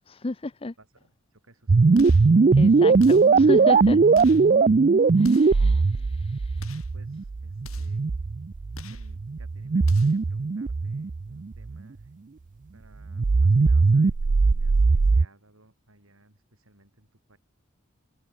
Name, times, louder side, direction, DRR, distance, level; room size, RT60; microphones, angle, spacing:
voice 1, 0.1-0.7 2.5-4.0 5.2-6.6, left 2 dB, 25° left, 0.6 m, -32 dB
voice 2, 0.8-2.0 2.9-3.0 4.5-4.7 5.6-6.2 6.9-8.1 8.7-12.1 12.7-17.4, right 1 dB, 80° right, 7.7 m, -58 dB
sound 1, 1.7-11.8 13.1-15.2, right 4 dB, 40° right, 0.4 m, -20 dB
sound 2, 1.9-2.3 3.0-3.4 4.1-4.5 5.2-5.6 6.6-7.0 7.6-8.0 8.7-9.1 9.8-10.3, left 4 dB, 85° left, 6.6 m, -46 dB
head